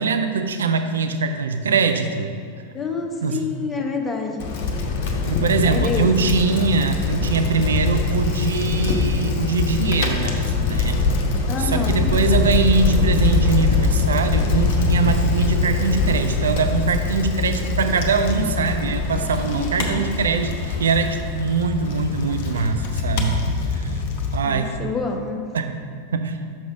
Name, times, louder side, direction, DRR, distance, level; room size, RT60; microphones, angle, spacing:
voice 1, 0.0-2.3 3.2-3.4 5.3-10.9 11.6-23.4 23.7-23.9 24.3-24.8 25.5-25.8 26.1-26.4, right 5 dB, 65° right, 7 dB, 0.4 m, -22 dB
voice 2, 2.7-4.5 5.7-6.4 11.5-12.1 19.5-20.0 24.4-25.4, left 4 dB, 15° left, 2 dB, 0.8 m, -28 dB
Bicycle, 4.4-24.4, left 4 dB, 45° left, 0.8 m, -23 dB
5.9 x 5.4 x 4.7 m, 2.2 s
figure-of-eight pair, 90°, 0 cm